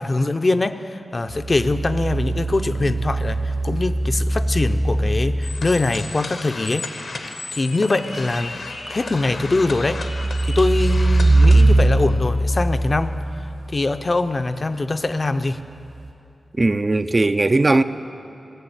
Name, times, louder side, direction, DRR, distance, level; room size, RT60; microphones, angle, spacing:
voice 1, 0.0-6.9 7.5-8.6 8.9-10.0 10.4-13.2 13.7-15.6, left 2 dB, 50° left, 9 dB, 0.5 m, -23 dB
sound 1, 1.3-5.9 9.3-13.9 16.0-16.1, right 2 dB, 70° right, 2.1 m, -21 dB
sound 2, 5.4-11.8, left 3 dB, 80° left, 1.0 m, -34 dB
voice 2, 16.6-17.8, right 2 dB, 40° right, 10 dB, 0.4 m, -18 dB
15.0 x 6.8 x 8.0 m, 2.8 s
cardioid pair, 40°, 0 cm